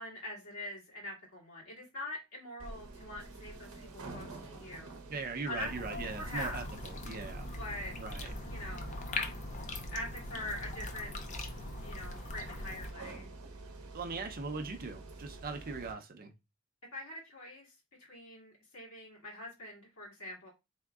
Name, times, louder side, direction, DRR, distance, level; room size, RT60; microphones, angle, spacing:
voice 1, 0.0-5.0 5.5-6.6 7.6-7.9 8.5-9.0 9.9-11.2 11.8-13.3 16.9-20.5, left 1 dB, 75° left, 2.0 m, -43 dB
sound 1, 2.6-15.9, right 3 dB, 85° right, 0.8 m, -49 dB
voice 2, 5.1-7.5 8.0-8.3 13.9-16.3, right 4 dB, 40° right, 0.5 m, -40 dB
sound 2, 5.6-12.9, left 2 dB, 35° left, 0.5 m, -41 dB
3.9 x 3.5 x 2.3 m
head